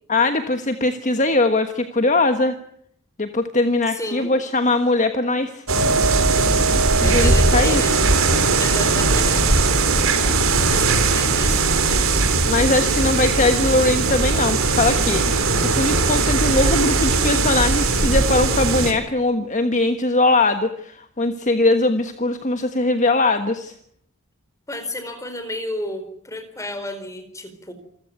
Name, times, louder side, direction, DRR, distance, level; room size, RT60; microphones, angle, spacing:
voice 1, 0.1-2.6 3.2-5.6 7.0-8.1 12.5-23.7, left 2 dB, 35° left, 8 dB, 1.3 m, -21 dB
voice 2, 3.9-4.3 7.0-7.9 8.6-9.4 10.8-11.6 24.7-27.7, left 1 dB, 15° left, 9 dB, 4.2 m, -31 dB
sound 1, 5.7-18.9, right 3 dB, 70° right, 4.0 m, -19 dB
28.0 x 15.0 x 9.5 m, 0.69 s
head